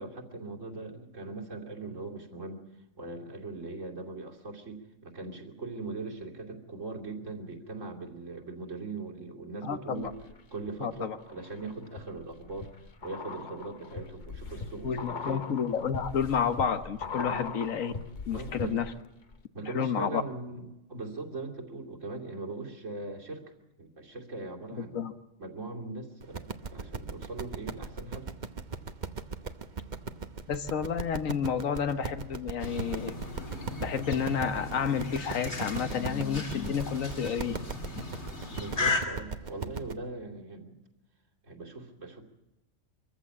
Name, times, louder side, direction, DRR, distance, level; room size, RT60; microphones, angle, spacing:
voice 1, 0.0-2.6 3.0-12.7 13.0-15.5 17.3-17.5 18.3-18.9 19.5-23.4 23.8-25.0 25.4-28.3 38.5-40.8 41.4-42.2, right 3 dB, 70° right, 0 dB, 3.1 m, -40 dB
voice 2, 9.6-10.1 10.8-11.2 14.8-17.9 18.3-18.9 19.6-20.2 24.7-25.1 30.5-33.2 33.8-37.6, left 7 dB, 80° left, 10 dB, 1.5 m, -30 dB
sound 1, 10.0-10.7 11.2-19.1 19.3-19.4, left 4 dB, 40° left, 1.0 m, -40 dB
sound 2, 26.2-39.9, right 5 dB, 40° right, 1.0 m, -38 dB
sound 3, 32.6-39.0, left 3 dB, 55° left, 3.0 m, -36 dB
24.5 x 14.5 x 8.5 m, 0.98 s
omnidirectional pair, 1.4 m